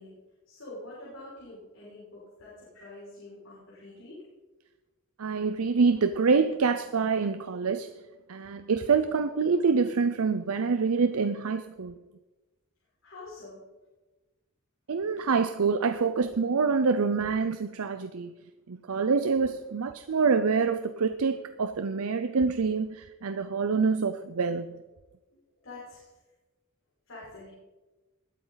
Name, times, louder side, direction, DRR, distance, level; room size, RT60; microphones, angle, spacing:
voice 1, 0.0-4.3 13.0-13.7 25.3-26.1 27.1-27.5, left 2 dB, 65° left, 5.7 m, -46 dB
voice 2, 5.2-7.9 8.3-12.0 14.9-18.3 18.7-24.8, right 5 dB, 80° right, 0.6 m, -26 dB
20.5 x 9.3 x 4.0 m
head